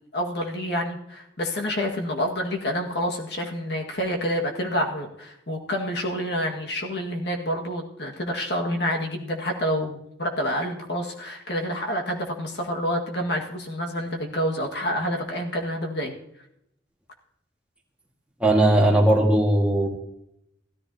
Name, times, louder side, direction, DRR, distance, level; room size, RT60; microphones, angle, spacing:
voice 1, 0.1-16.1, equal, 65° left, 1 dB, 1.8 m, -28 dB
voice 2, 18.4-19.9, right 1 dB, 5° right, -1 dB, 1.7 m, -18 dB
16.0 x 13.5 x 2.8 m, 0.78 s
head